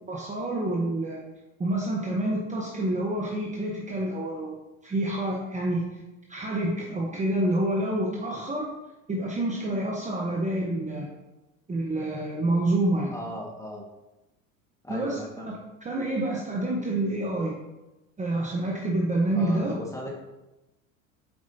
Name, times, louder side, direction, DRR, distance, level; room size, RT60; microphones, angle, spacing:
voice 1, 0.1-1.2 1.6-4.5 4.8-6.0 6.3-8.7 9.1-11.1 11.7-13.2 14.9-17.6 18.2-19.7, right 1 dB, 20° right, -2 dB, 1.0 m, -28 dB
voice 2, 13.1-13.8 14.8-15.5 19.3-20.2, equal, 10° left, -1 dB, 1.7 m, -37 dB
8.0 x 4.7 x 2.8 m, 1.0 s
hypercardioid pair, 85°, 41 cm